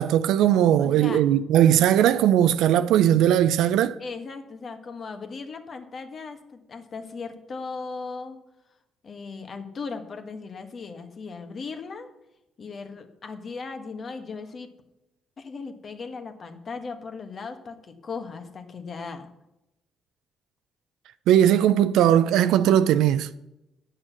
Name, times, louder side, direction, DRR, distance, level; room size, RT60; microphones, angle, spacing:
voice 1, 0.0-4.0 21.3-23.3, right 11 dB, 90° right, 0.4 m, -19 dB
voice 2, 0.8-1.2 4.0-8.4 9.0-12.1 12.6-14.7 15.4-19.3, left 4 dB, 45° left, 1.4 m, -37 dB
9.1 x 6.4 x 7.3 m
cardioid pair, 90°, 0 cm